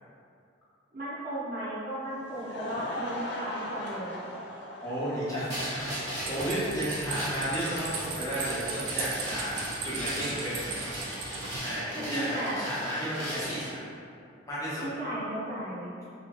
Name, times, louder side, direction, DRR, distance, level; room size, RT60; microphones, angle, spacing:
voice 1, 0.9-4.2 11.9-12.6 14.7-15.9, right 1 dB, 45° right, -10 dB, 0.8 m, -35 dB
Laughter / Crowd, 2.0-8.4, left 1 dB, 60° left, 0.4 m, -39 dB
voice 2, 4.8-5.9 6.3-10.8 11.6-13.8 14.5-14.8, right 1 dB, 15° left, -10 dB, 0.8 m, -33 dB
sound 1, 5.5-13.7, equal, 20° right, 0.9 m, -38 dB
sound 2, 6.2-11.6, right 4 dB, 85° right, 0.4 m, -38 dB
3.1 x 2.6 x 2.4 m, 2.5 s
head